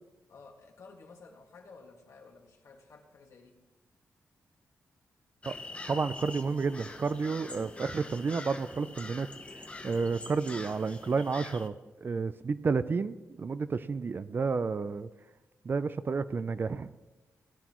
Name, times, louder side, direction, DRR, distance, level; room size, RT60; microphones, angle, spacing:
voice 1, 0.3-3.6, left 4 dB, 65° left, 1 dB, 2.0 m, -53 dB
sound 1, 5.4-11.7, left 2 dB, 20° left, 0.9 m, -44 dB
voice 2, 5.9-9.3 9.8-11.7 12.0-15.1 15.6-16.9, right 4 dB, 40° right, 13 dB, 0.4 m, -31 dB
18.0 x 10.5 x 3.0 m, 1.1 s
wide cardioid pair, 110°, 6 cm